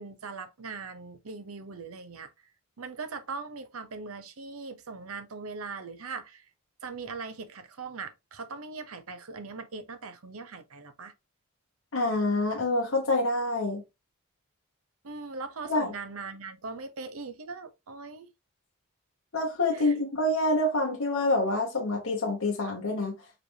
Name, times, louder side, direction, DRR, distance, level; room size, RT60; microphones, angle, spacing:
voice 1, 0.0-2.3 2.8-6.4 6.8-11.1 15.0-18.3 19.7-20.0, right 4 dB, 80° right, 0.7 m, -40 dB
voice 2, 11.9-13.8 15.7-15.9 19.3-23.1, left 2 dB, 75° left, 1.1 m, -27 dB
5.0 x 3.2 x 2.7 m
head